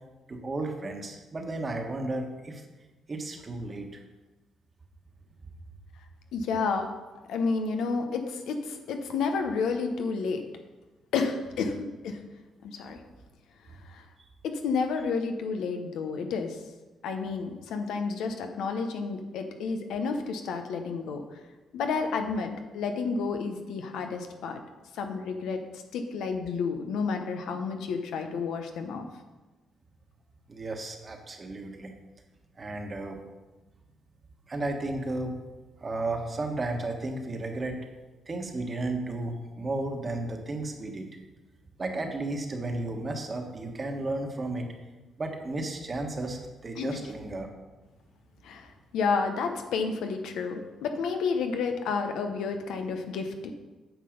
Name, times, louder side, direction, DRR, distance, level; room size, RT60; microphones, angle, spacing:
voice 1, 0.3-2.6 3.1-3.9 30.5-31.9 32.6-33.2 34.5-35.4 35.8-37.8 38.3-41.1 41.8-44.7 45.2-47.5, right 2 dB, 30° right, 4 dB, 1.4 m, -33 dB
voice 2, 6.3-6.9 7.3-10.4 11.1-12.2 12.6-13.0 13.9-14.0 14.4-16.6 17.0-21.2 21.7-24.6 24.9-29.1 46.7-47.0 48.4-53.5, left 5 dB, 85° left, 5 dB, 1.0 m, -30 dB
9.2 x 6.0 x 5.2 m, 1.2 s
cardioid pair, 90°, 0 cm